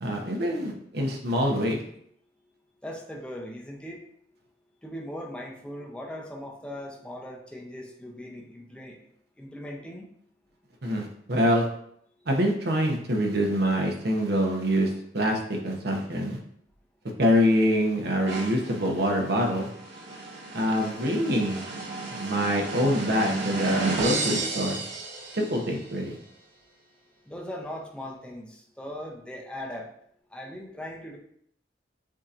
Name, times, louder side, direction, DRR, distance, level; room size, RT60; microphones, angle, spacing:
voice 1, 0.0-1.8 10.8-11.7 12.3-16.4 17.2-19.7 20.5-21.6 22.1-24.8 25.3-26.2, equal, 65° right, 1 dB, 0.9 m, -25 dB
voice 2, 2.8-4.0 4.8-9.1 9.4-10.0 12.2-12.3 20.0-20.1 27.2-29.9 30.3-31.2, left 1 dB, 5° left, -1 dB, 0.7 m, -39 dB
sound 1, 18.3-25.8, right 3 dB, 85° right, 1.1 m, -33 dB
7.3 x 2.8 x 2.5 m, 0.69 s
head